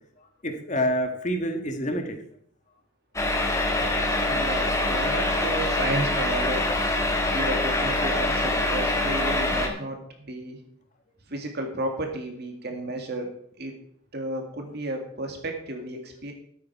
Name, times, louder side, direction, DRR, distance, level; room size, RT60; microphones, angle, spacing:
voice 1, 0.2-2.2, equal, 35° left, 5 dB, 1.6 m, -28 dB
sound 1, 3.2-9.7, left 2 dB, 15° left, 1.6 m, -24 dB
voice 2, 4.3-6.7 7.3-10.6 11.3-13.7 14.1-16.3, right 1 dB, 50° right, 3 dB, 2.1 m, -33 dB
13.0 x 8.7 x 4.7 m, 0.66 s
head